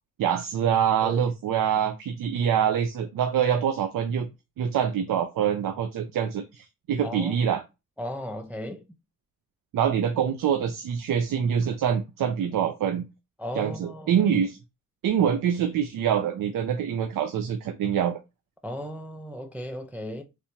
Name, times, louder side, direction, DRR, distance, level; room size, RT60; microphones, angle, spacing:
voice 1, 0.2-4.3 4.6-7.6 9.7-13.0 13.5-14.6 15.0-18.2, right 8 dB, 75° right, 0.5 m, -25 dB
voice 2, 7.0-7.4 8.0-8.8 13.4-14.4 18.6-20.2, equal, 5° right, 0.3 m, -36 dB
3.3 x 2.9 x 2.8 m
wide cardioid pair, 100°, 34 cm